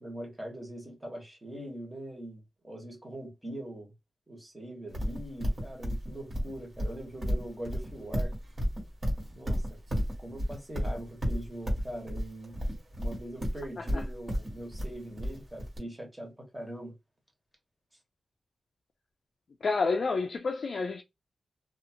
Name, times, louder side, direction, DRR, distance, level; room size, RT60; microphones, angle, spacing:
voice 1, 0.0-3.9 4.3-8.3 9.3-9.8 10.2-12.6 13.0-16.9, right 1 dB, 15° right, 1.3 m, -42 dB
Livestock farm animals working animals, 4.9-15.8, equal, 40° right, 1.5 m, -32 dB
voice 2, 19.6-21.0, left 4 dB, 55° left, 0.4 m, -29 dB
2.7 x 2.4 x 2.7 m
wide cardioid pair, 125°, 0 cm